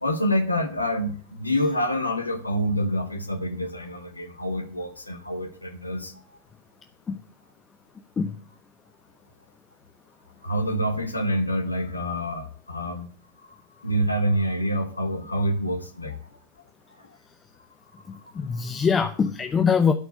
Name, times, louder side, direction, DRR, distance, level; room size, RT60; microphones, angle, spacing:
voice 1, 0.0-6.4 10.4-13.1 13.4-16.3 17.0-17.1 18.1-18.6, equal, 80° left, 7 dB, 1.2 m, -27 dB
voice 2, 18.1-19.9, left 6 dB, 20° left, 8 dB, 0.7 m, -23 dB
12.0 x 4.7 x 8.0 m, 0.43 s
figure-of-eight pair, 90°, 0 cm